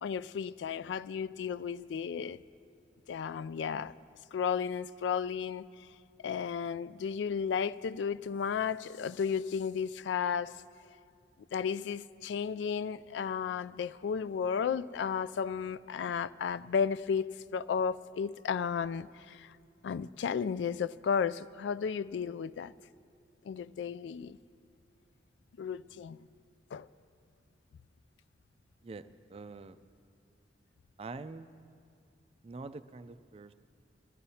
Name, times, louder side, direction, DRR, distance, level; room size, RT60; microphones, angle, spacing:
voice 1, 0.0-2.4 3.1-3.9 4.3-5.7 6.2-10.5 11.5-19.5 19.8-22.7 23.5-24.4 25.6-26.2 26.7-26.9, left 6 dB, 85° left, 0.3 m, -33 dB
voice 2, 29.3-29.8 31.0-31.5 32.4-33.5, right 3 dB, 35° right, 0.3 m, -44 dB
21.5 x 14.5 x 2.8 m
head